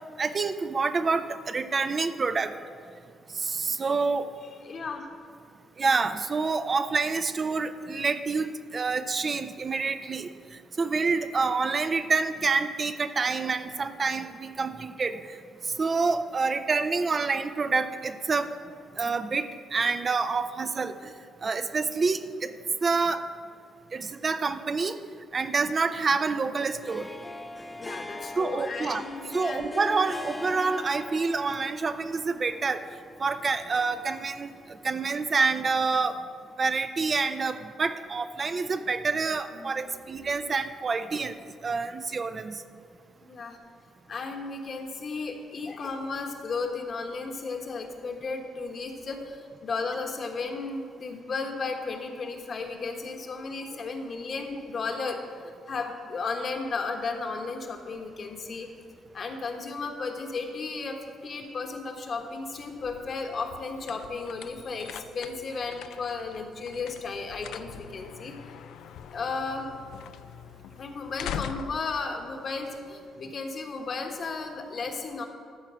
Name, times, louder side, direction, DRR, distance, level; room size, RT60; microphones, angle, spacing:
voice 1, 0.2-2.5 3.4-4.3 5.8-10.3 10.8-15.2 15.8-18.5 19.0-20.9 21.4-22.5 22.8-23.2 23.9-25.0 25.3-27.1 28.4-29.0 29.3-32.8 33.2-34.5 34.8-36.2 36.6-41.3 41.6-42.6, right 4 dB, 40° right, 9 dB, 0.5 m, -27 dB
voice 2, 4.6-5.1 11.2-11.4 27.8-29.7 39.5-39.9 40.2-40.3 43.2-43.6 44.1-58.7 59.1-68.3 69.1-69.7 70.8-75.2, left 4 dB, 50° left, 3 dB, 1.3 m, -34 dB
Harp, 26.8-35.0, left 2 dB, 15° left, 0.6 m, -41 dB
sound 1, 62.5-73.2, left 9 dB, 80° left, 0.3 m, -43 dB
13.0 x 4.5 x 7.4 m, 2.2 s
cardioid pair, 90°, 0 cm